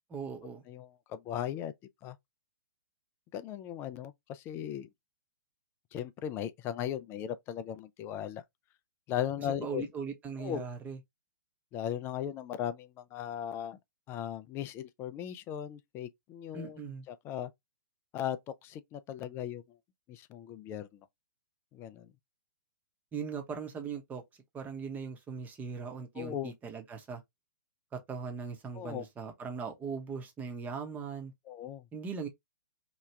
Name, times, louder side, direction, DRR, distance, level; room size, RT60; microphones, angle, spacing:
voice 1, 0.1-0.6 9.4-11.0 16.5-17.1 23.1-24.2 24.5-27.2 27.9-31.3 31.9-32.3, right 5 dB, 15° right, 0.8 m, -39 dB
voice 2, 0.7-1.7 2.0-2.2 3.3-4.9 5.9-8.4 9.1-9.9 10.4-10.7 11.7-13.8 14.1-16.8 17.1-17.5 18.1-19.6 20.1-21.0 21.7-22.1 26.2-26.5 28.7-29.0 31.5-31.8, left 10 dB, 20° left, 0.3 m, -37 dB
2.9 x 2.3 x 3.2 m
hypercardioid pair, 130°, 11 cm